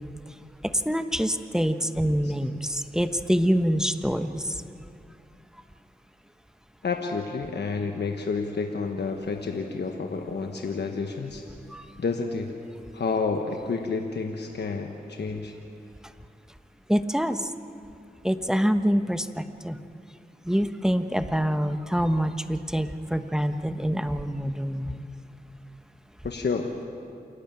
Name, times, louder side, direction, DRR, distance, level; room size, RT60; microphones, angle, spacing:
voice 1, 0.8-4.4 11.7-11.8 16.9-17.4 18.2-19.8 20.5-25.0, equal, 5° right, 9 dB, 1.1 m, -25 dB
voice 2, 6.8-11.4 12.0-12.5 12.9-15.5 26.2-26.7, left 4 dB, 85° left, 3 dB, 1.2 m, -29 dB
28.0 x 11.5 x 9.0 m, 2.5 s
cardioid pair, 40°, 17 cm